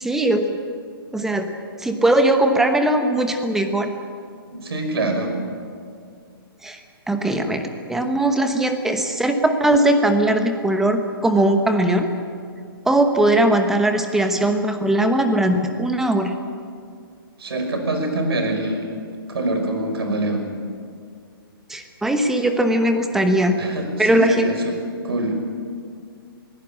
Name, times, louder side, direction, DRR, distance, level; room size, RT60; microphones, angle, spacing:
voice 1, 0.0-0.6 1.1-1.5 1.8-3.9 6.6-6.8 7.1-12.1 12.8-16.3 21.7-23.6 24.0-24.5, right 1 dB, 5° right, 6 dB, 1.0 m, -19 dB
voice 2, 4.5-5.3 17.4-18.8 19.3-20.5 23.6-24.8 25.0-25.4, right 1 dB, 85° right, 5 dB, 5.4 m, -24 dB
21.5 x 16.5 x 8.8 m, 2.2 s
hypercardioid pair, 165°, 13 cm